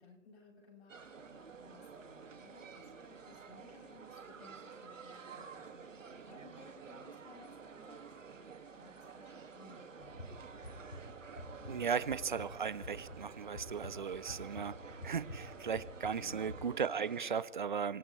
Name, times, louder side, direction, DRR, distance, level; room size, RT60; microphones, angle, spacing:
voice 1, 0.0-10.3 16.2-16.7, left 3 dB, 55° left, -2 dB, 7.5 m, -60 dB
sound 1, 0.9-17.4, right 5 dB, 70° right, 2.1 m, -51 dB
sound 2, 10.0-16.6, left 1 dB, 85° left, 6.2 m, -49 dB
voice 2, 11.7-18.0, right 6 dB, 40° right, 19 dB, 0.5 m, -37 dB
26.5 x 17.0 x 3.2 m, 1.1 s
hypercardioid pair, 155°, 39 cm